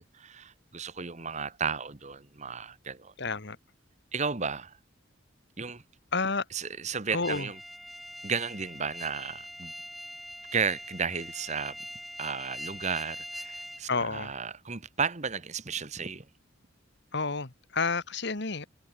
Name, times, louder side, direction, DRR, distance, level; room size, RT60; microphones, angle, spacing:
voice 1, 0.0-3.1 4.1-4.8 5.6-5.8 6.5-7.6 8.2-9.7 10.5-11.8 12.2-16.3, right 5 dB, 35° right, 1.2 m, -33 dB
voice 2, 3.2-3.6 6.1-6.4 7.1-7.5 13.9-14.3 17.1-18.7, left 4 dB, 55° left, 1.6 m, -30 dB
sound 1, 7.2-13.8, equal, ahead, 2.9 m, -43 dB
head